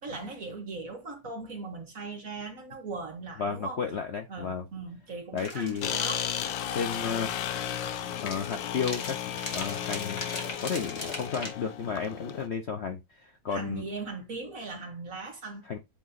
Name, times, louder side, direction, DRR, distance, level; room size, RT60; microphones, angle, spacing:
voice 1, 0.0-3.8 4.3-6.3 13.5-15.7, right 3 dB, 50° right, 2.0 m, -39 dB
voice 2, 3.4-4.6 5.3-5.9 6.7-7.4 8.2-10.2 10.6-13.8 15.7-15.8, left 6 dB, 55° left, 0.8 m, -33 dB
sound 1, 5.4-11.5, left 3 dB, 40° left, 1.6 m, -40 dB
sound 2, 5.8-12.5, left 10 dB, 85° left, 1.4 m, -34 dB
8.5 x 3.0 x 3.9 m
omnidirectional pair, 2.0 m